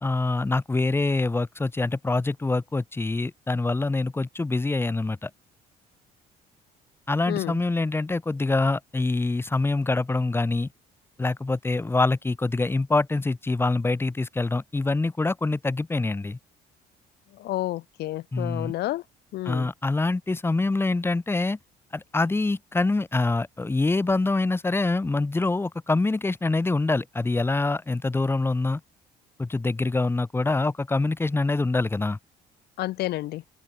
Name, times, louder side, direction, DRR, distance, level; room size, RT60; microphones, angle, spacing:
voice 1, 0.0-5.3 7.1-10.7 11.2-16.4 18.3-18.7 19.4-21.6 21.9-28.8 29.4-32.2, left 3 dB, 15° left, 1.1 m, -25 dB
voice 2, 7.3-7.6 17.4-19.0 19.3-19.7 32.8-33.4, left 16 dB, 75° left, 1.2 m, -30 dB
cardioid pair, 110°, 17 cm